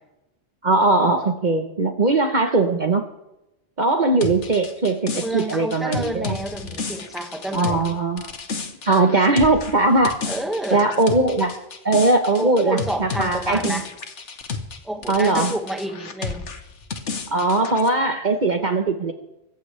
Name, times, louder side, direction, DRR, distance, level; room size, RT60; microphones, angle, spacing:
voice 1, 0.6-3.0 3.8-6.4 7.5-8.3 8.9-10.2 10.7-11.6 11.8-13.8 15.1-15.5 17.3-19.1, right 2 dB, 45° right, 5 dB, 1.2 m, -20 dB
sound 1, 4.2-14.8 15.0-17.9, left 4 dB, 90° left, 1.6 m, -32 dB
voice 2, 5.2-7.9 10.2-10.8 12.4-13.9 14.8-16.5, right 1 dB, ahead, 3 dB, 1.7 m, -29 dB
24.5 x 14.5 x 3.4 m, 0.90 s
omnidirectional pair, 1.2 m